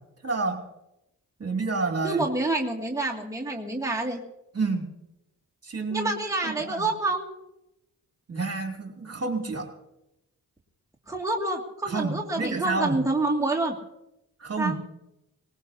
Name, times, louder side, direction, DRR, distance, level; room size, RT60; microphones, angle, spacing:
voice 1, 0.2-0.6 1.4-2.2 4.5-4.9 5.6-6.1 6.4-6.9 8.3-9.7 11.8-12.9 14.4-14.8, right 3 dB, 35° right, 2 dB, 2.9 m, -29 dB
voice 2, 2.0-4.2 5.9-7.3 11.1-13.8 14.6-14.8, right 2 dB, 10° right, -2 dB, 2.3 m, -27 dB
19.5 x 18.5 x 2.8 m, 0.89 s
supercardioid pair, 45°, 40 cm